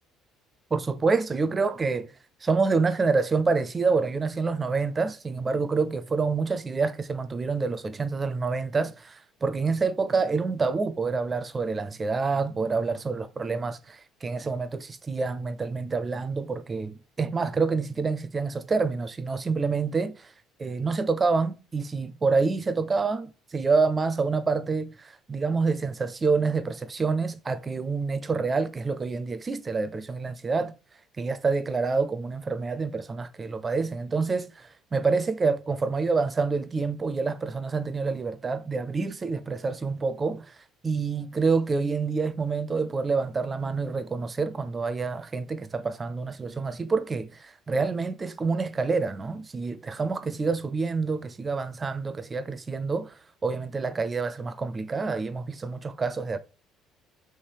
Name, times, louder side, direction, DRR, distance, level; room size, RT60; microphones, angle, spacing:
voice 1, 0.7-2.1 2.4-20.3 20.6-30.7 31.2-40.6 40.8-56.4, right 4 dB, 20° right, 0.4 m, -27 dB
3.4 x 3.1 x 4.5 m
cardioid pair, 160°, 0 cm